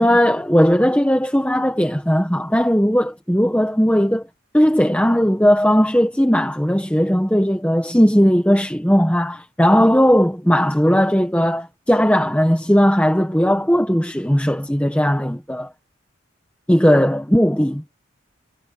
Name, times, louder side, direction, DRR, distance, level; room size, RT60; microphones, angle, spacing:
voice 1, 0.0-4.2 4.5-15.7 16.7-17.8, equal, 5° left, 1.4 m, -17 dB
head